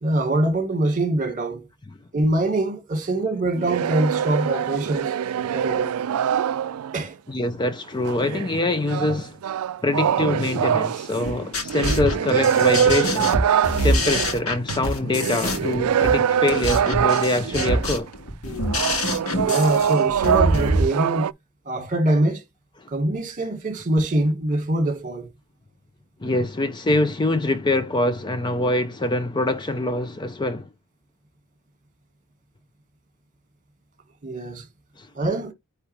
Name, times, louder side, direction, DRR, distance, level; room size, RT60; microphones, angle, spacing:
voice 1, 0.0-1.7 2.1-5.1 5.5-6.0 6.9-7.2 19.4-21.3 21.6-22.4 22.9-25.3 34.2-34.7 35.1-35.5, right 1 dB, 40° right, 1.7 m, -24 dB
sound 1, 3.6-7.1 8.0-18.0 18.6-21.3, right 8 dB, 85° right, 0.4 m, -24 dB
voice 2, 7.3-9.4 9.8-13.3 13.8-18.1 22.8-22.9 26.2-30.7 35.0-35.1, left 2 dB, 20° left, 0.5 m, -24 dB
sound 2, 11.2-20.8, equal, 75° left, 1.8 m, -25 dB
9.6 x 3.3 x 3.2 m
head